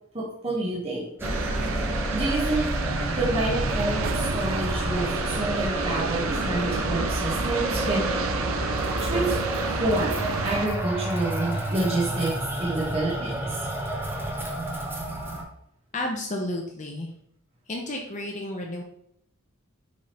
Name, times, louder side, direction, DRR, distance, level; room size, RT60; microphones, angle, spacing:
voice 1, 0.1-1.1 2.1-2.7 3.1-8.0 9.0-9.4 9.8-13.6, right 2 dB, 30° right, -5 dB, 1.3 m, -28 dB
sound 1, 1.2-15.4, right 1 dB, 10° right, 1.0 m, -29 dB
sound 2, 1.2-10.7, right 5 dB, 70° right, 0.5 m, -31 dB
voice 2, 15.9-17.1 17.7-18.8, left 1 dB, 35° left, 1 dB, 0.7 m, -31 dB
6.4 x 3.7 x 4.3 m, 0.73 s
head